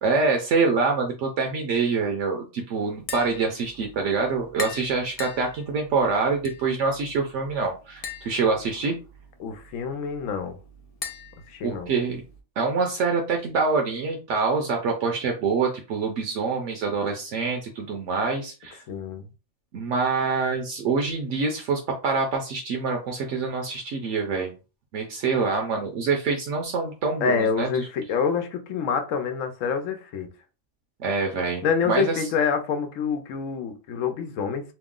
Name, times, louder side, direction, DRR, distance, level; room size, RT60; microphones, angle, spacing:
voice 1, 0.0-9.0 11.6-12.2 12.6-18.8 19.7-24.5 24.9-27.9 31.0-32.2, right 4 dB, 70° right, 0.9 m, -25 dB
Tap, 2.9-12.4, left 5 dB, 65° left, 0.3 m, -42 dB
voice 2, 9.4-10.6 11.5-11.9 18.9-19.3 27.2-30.3 31.6-34.7, left 6 dB, 80° left, 1.0 m, -27 dB
2.9 x 2.0 x 3.6 m
omnidirectional pair, 1.3 m